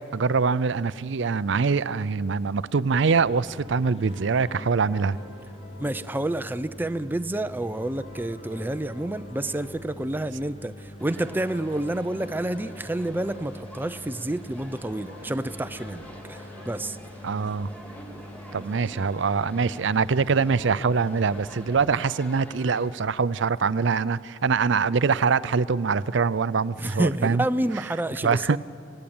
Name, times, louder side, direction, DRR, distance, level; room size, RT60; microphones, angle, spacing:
voice 1, 0.0-5.2 17.2-17.7 18.5-27.4 28.2-28.6, right 5 dB, 60° right, 17 dB, 0.5 m, -24 dB
sound 1, 3.1-22.0, left 1 dB, 30° left, 1.8 m, -44 dB
sound 2, 4.1-18.3, left 1 dB, 55° left, 4.9 m, -49 dB
voice 2, 5.8-17.0 26.8-28.6, right 1 dB, 10° right, 11 dB, 0.4 m, -29 dB
sound 3, 11.0-22.9, equal, 5° left, 2.6 m, -46 dB
27.0 x 17.0 x 8.7 m, 3.0 s
head